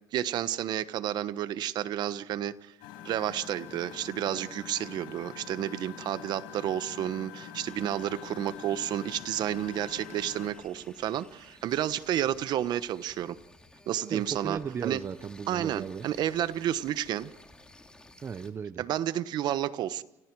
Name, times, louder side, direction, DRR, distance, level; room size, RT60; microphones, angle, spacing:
voice 1, 0.1-2.7 3.0-13.4 13.9-15.0 15.5-17.3 18.8-20.0, right 11 dB, 55° right, 14 dB, 1.2 m, -31 dB
Engine, 2.8-10.5, left 9 dB, 80° left, 6.0 m, -45 dB
sound 1, 7.7-18.5, left 2 dB, 10° left, 2.9 m, -55 dB
voice 2, 14.1-16.1 18.2-18.9, right 6 dB, 30° right, 13 dB, 0.8 m, -36 dB
30.0 x 26.5 x 4.8 m, 0.99 s
cardioid pair, 120°, 9 cm